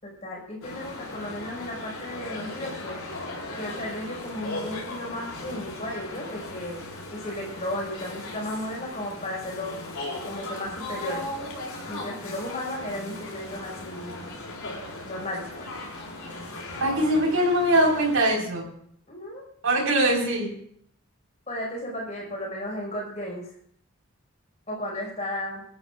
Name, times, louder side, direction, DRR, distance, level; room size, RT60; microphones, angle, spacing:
voice 1, 0.0-3.0 3.5-9.8 10.2-11.5 11.9-14.2 15.0-15.7 19.1-19.4 21.5-23.5 24.7-25.6, left 1 dB, 30° left, -2 dB, 5.5 m, -34 dB
sound 1, 0.6-18.2, left 2 dB, 80° left, 4.8 m, -37 dB
voice 2, 16.8-18.6 19.6-20.5, right 1 dB, 70° right, -2 dB, 4.9 m, -22 dB
25.5 x 12.5 x 2.5 m, 0.66 s
head